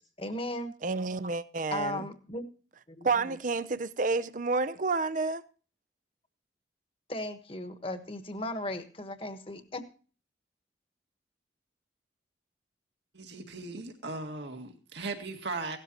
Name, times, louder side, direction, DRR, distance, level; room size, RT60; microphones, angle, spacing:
voice 1, 0.2-0.7 1.7-2.4 2.9-3.4 7.1-9.8, left 1 dB, 30° left, 1.3 m, -36 dB
voice 2, 0.8-2.1 3.0-5.4, right 3 dB, 45° right, 0.5 m, -30 dB
voice 3, 13.1-15.8, right 3 dB, 70° right, 2.0 m, -38 dB
17.0 x 13.0 x 2.9 m
head